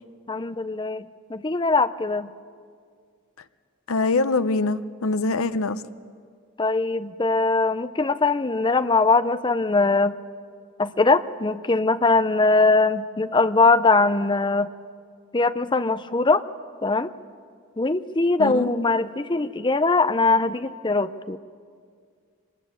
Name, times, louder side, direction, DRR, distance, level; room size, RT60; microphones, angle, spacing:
voice 1, 0.3-2.3 6.6-10.1 10.8-14.7 15.3-16.4 16.8-17.1 17.8-21.4, left 3 dB, 20° left, 13 dB, 0.6 m, -21 dB
voice 2, 3.9-5.8 18.4-18.7, left 3 dB, 80° left, 13 dB, 0.8 m, -23 dB
24.5 x 20.0 x 8.2 m, 2.1 s
head